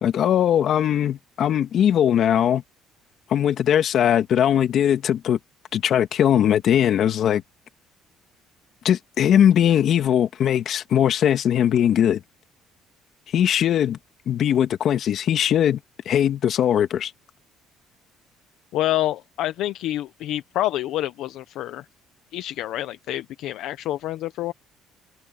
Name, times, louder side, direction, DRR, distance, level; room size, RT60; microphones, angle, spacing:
voice 1, 0.0-2.6 3.3-5.4 5.7-7.4 8.8-12.2 13.3-14.0 14.3-15.8 16.1-17.1, left 10 dB, 55° left, 2.4 m, -20 dB
voice 2, 18.7-21.8 22.3-24.5, left 14 dB, 75° left, 1.1 m, -27 dB
cardioid pair, 105°, 0 cm